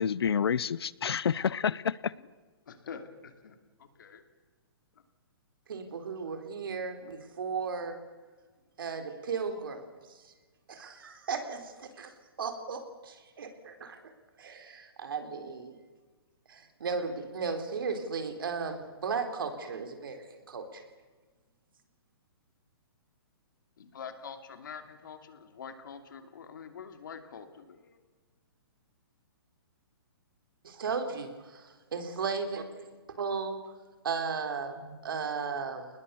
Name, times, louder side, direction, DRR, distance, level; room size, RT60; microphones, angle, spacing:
voice 1, 0.0-2.1, left 7 dB, 80° left, 21 dB, 0.7 m, -28 dB
voice 2, 2.7-4.2 23.8-27.7, left 6 dB, 55° left, 7 dB, 2.8 m, -45 dB
voice 3, 5.7-8.0 8.8-9.8 10.7-12.1 12.4-12.8 13.4-13.9 14.4-15.7 16.8-20.2 20.5-20.6 30.8-33.6 34.0-35.9, right 5 dB, 65° right, 6 dB, 3.9 m, -35 dB
29.5 x 20.0 x 7.1 m, 1.4 s
hypercardioid pair, 175°, 13 cm